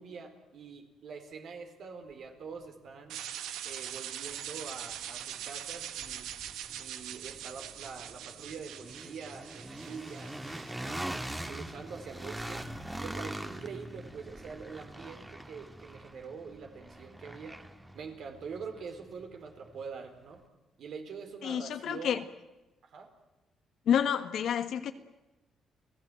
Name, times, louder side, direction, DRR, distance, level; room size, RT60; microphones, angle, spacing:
voice 1, 0.0-3.2 3.6-6.3 6.8-11.1 11.4-12.6 13.0-17.6 17.9-20.4 20.8-22.2 22.9-23.1, right 5 dB, 65° right, 4.2 m, -45 dB
sound 1, 3.1-11.1, right 10 dB, 90° right, 1.4 m, -42 dB
sound 2, 3.3-3.4 3.9-19.9, right 1 dB, 10° right, 1.9 m, -43 dB
voice 2, 21.4-22.2 23.9-24.9, left 9 dB, 75° left, 1.5 m, -29 dB
30.0 x 17.0 x 9.1 m
cardioid pair, 90°, 0 cm